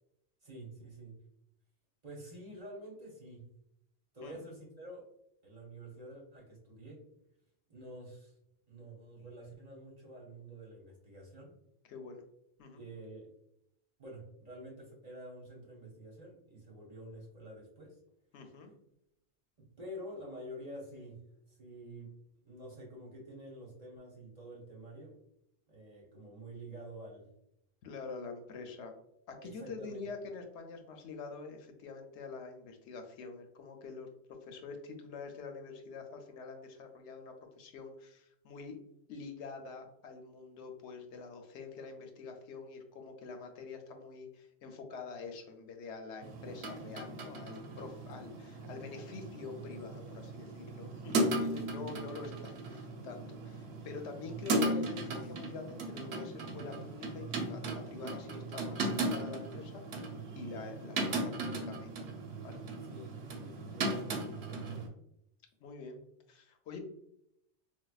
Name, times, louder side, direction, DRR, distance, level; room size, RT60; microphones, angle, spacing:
voice 1, 0.4-1.2 2.0-3.5 4.1-5.0 5.4-7.0 7.7-8.3 8.7-11.5 12.8-13.3 14.0-18.0 19.6-21.2 21.5-22.1 22.4-25.2 25.7-27.3 29.4-30.0 48.2-48.3 51.5-52.0 62.8-64.9, right 1 dB, 40° right, -2 dB, 0.9 m, -48 dB
voice 2, 11.9-12.2 12.6-12.8 18.3-18.7 27.8-28.9 29.3-34.1 34.4-38.8 39.1-60.1 60.3-62.0 62.4-62.6 63.0-63.1 65.6-66.0 66.3-66.8, left 4 dB, 85° left, 4 dB, 0.9 m, -46 dB
sound 1, 46.2-64.9, right 2 dB, 75° right, 0.9 m, -37 dB
4.4 x 2.2 x 2.3 m, 0.78 s
omnidirectional pair, 1.1 m